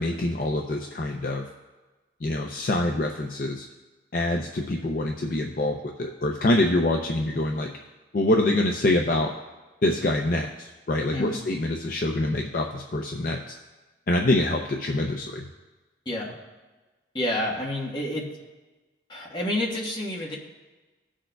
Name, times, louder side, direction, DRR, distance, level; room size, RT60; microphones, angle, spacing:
voice 1, 0.0-1.4 2.2-3.7 4.1-7.7 8.1-9.3 9.8-13.5 14.1-15.4, left 1 dB, 50° left, 2 dB, 0.5 m, -25 dB
voice 2, 17.1-18.3 19.1-20.4, left 1 dB, 25° left, -2 dB, 1.2 m, -29 dB
17.5 x 6.3 x 2.3 m, 1.2 s
head